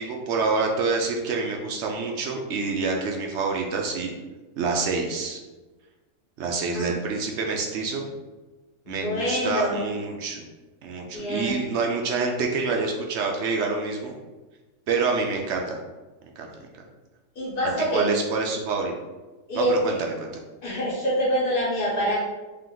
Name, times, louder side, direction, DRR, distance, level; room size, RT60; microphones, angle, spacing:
voice 1, 0.0-4.1 4.6-5.4 6.4-8.1 8.9-10.4 10.8-14.1 14.9-15.7 16.4-16.5 17.9-18.9 19.5-19.9 20.2-20.3, right 4 dB, 65° right, 1 dB, 0.7 m, -27 dB
voice 2, 8.9-9.9 11.1-11.6 17.4-18.2 19.5-20.0 20.6-22.2, equal, 75° left, -7 dB, 1.8 m, -26 dB
3.4 x 2.9 x 3.7 m, 1.2 s
omnidirectional pair, 1.6 m